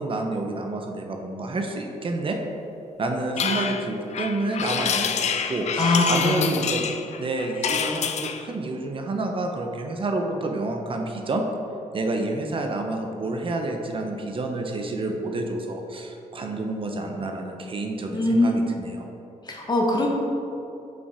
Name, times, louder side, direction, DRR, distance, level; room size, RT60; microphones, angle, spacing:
voice 1, 0.0-2.4 3.0-6.9 7.2-11.4 11.9-19.1, right 2 dB, 45° right, 3 dB, 0.7 m, -29 dB
sound 1, 3.4-8.5, left 7 dB, 60° left, 0.5 m, -27 dB
voice 2, 5.8-6.5 18.1-18.6 19.5-20.1, left 2 dB, 30° left, -1 dB, 1.3 m, -22 dB
5.8 x 5.2 x 4.8 m, 2.8 s
cardioid pair, 100°, 13 cm